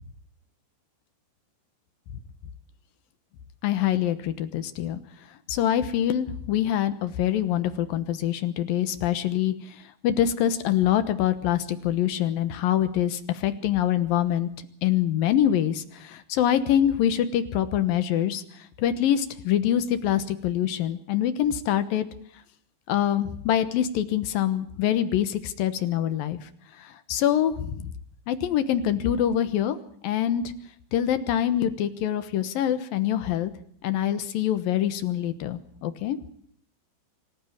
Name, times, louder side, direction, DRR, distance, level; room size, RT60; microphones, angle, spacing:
voice 1, 3.6-5.0 5.5-14.5 14.8-22.1 22.9-26.5 26.8-27.9 28.3-29.8 30.0-30.4 30.9-33.5 33.8-36.2, left 10 dB, 70° left, 11 dB, 2.4 m, -25 dB
25.5 x 15.0 x 8.7 m, 0.63 s
omnidirectional pair, 5.3 m